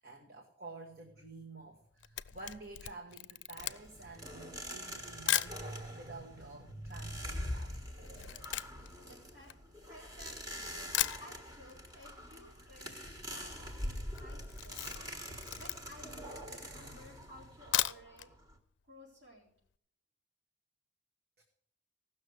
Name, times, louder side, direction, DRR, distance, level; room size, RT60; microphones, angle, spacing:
voice 1, 0.0-7.9 21.4-21.5, right 2 dB, 55° right, 1 dB, 1.6 m, -48 dB
Camera, 1.8-5.6 6.3-6.4 6.6-10.3 10.6-10.7 10.9-11.8 12.1-12.2 12.5-12.6 12.7-13.2 13.5-13.7 14.1-16.1 16.6-16.7 17.5-18.3 18.7-18.8 19.1-19.2, left 14 dB, 80° left, 0.4 m, -37 dB
sound 1, 3.6-18.6, equal, 20° right, 1.5 m, -44 dB
voice 2, 9.0-9.6 9.9-14.9 15.5-18.3 18.9-19.5, left 1 dB, 75° right, -7 dB, 4.3 m, -56 dB
16.0 x 6.3 x 8.0 m, 0.64 s
head